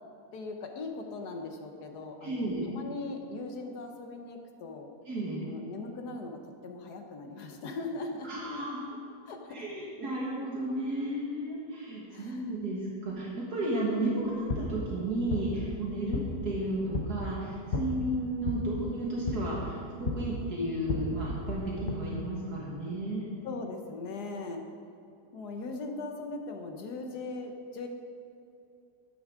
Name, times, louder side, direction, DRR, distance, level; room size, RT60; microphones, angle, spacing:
voice 1, 0.3-4.9 5.5-8.3 9.3-9.6 12.1-12.5 23.4-24.6 25.3-27.9, left 3 dB, 75° left, 4 dB, 1.6 m, -39 dB
voice 2, 2.2-2.7 5.1-5.4 8.2-8.9 9.5-23.4, right 1 dB, 70° right, -5 dB, 2.2 m, -33 dB
sound 1, 14.2-21.9, left 2 dB, 45° left, 1.0 m, -36 dB
12.0 x 10.0 x 3.7 m, 2.7 s
omnidirectional pair, 1.8 m